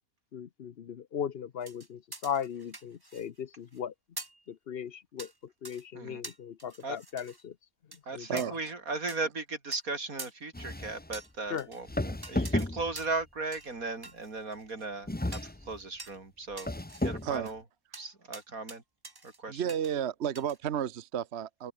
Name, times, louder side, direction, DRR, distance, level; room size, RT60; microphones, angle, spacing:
voice 1, 0.3-3.9 4.5-7.6 7.9-8.6 11.5-11.7, left 8 dB, 50° left, 0.9 m, -38 dB
sound 1, 1.6-3.4 3.7-3.8 4.2-4.4 5.2-5.3 5.6-5.8 6.2-7.4 7.9-8.0 8.4-8.5 9.1-9.2 9.7-9.8 10.2-10.3 11.1-11.8 12.2-12.7 13.0-13.2 13.5-13.7 14.0-14.9 15.3-15.5 16.0-16.2 16.6-17.5 17.9-18.1 18.3-18.8 19.0-19.4 19.7-19.9 20.4-20.6, right 2 dB, 15° right, 1.4 m, -46 dB
voice 2, 8.1-15.4 15.7-16.7 17.0-17.6 17.9-18.8 19.2-19.6, right 3 dB, 90° right, 4.1 m, -37 dB
sound 2, 10.5-11.2 11.9-13.2 15.1-15.8 16.5-17.4, left 1 dB, 10° left, 0.8 m, -33 dB
voice 3, 19.5-21.7, right 9 dB, 55° right, 1.2 m, -32 dB
open air
omnidirectional pair, 1.5 m